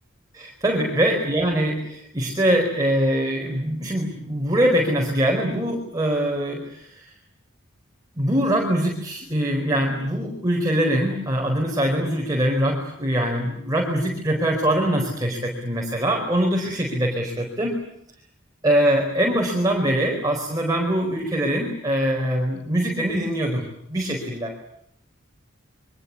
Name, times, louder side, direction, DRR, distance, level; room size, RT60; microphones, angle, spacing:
voice 1, 0.3-7.1 8.1-17.8 18.6-24.7, right 1 dB, 20° right, 0 dB, 4.7 m, -23 dB
28.0 x 24.0 x 8.5 m, 0.73 s
head